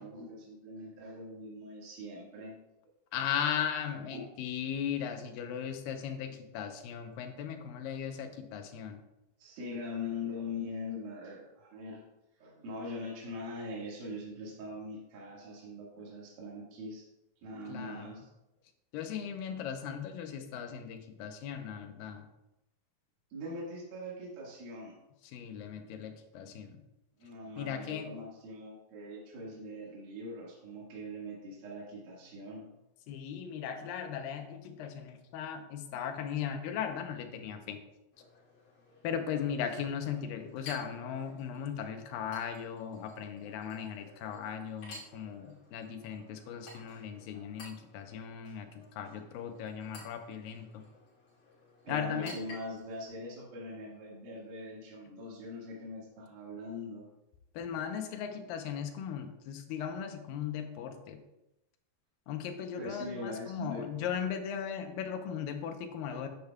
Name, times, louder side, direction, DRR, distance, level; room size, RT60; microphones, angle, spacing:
voice 1, 0.0-2.6 4.1-4.3 9.4-12.0 12.4-17.1 17.4-18.3 23.3-25.0 27.2-32.7 51.8-57.1 62.7-64.1 66.1-66.2, left 2 dB, 75° right, -4 dB, 3.6 m, -42 dB
voice 2, 3.1-9.0 17.7-18.1 18.9-22.3 25.3-26.8 27.6-28.2 33.1-37.8 39.0-50.8 51.9-52.4 57.5-61.2 62.3-66.3, left 8 dB, 80° left, 6 dB, 2.5 m, -37 dB
Chink clink, 38.1-53.1, left 2 dB, 55° left, 4.1 m, -54 dB
10.0 x 8.2 x 2.3 m, 0.92 s
omnidirectional pair, 4.2 m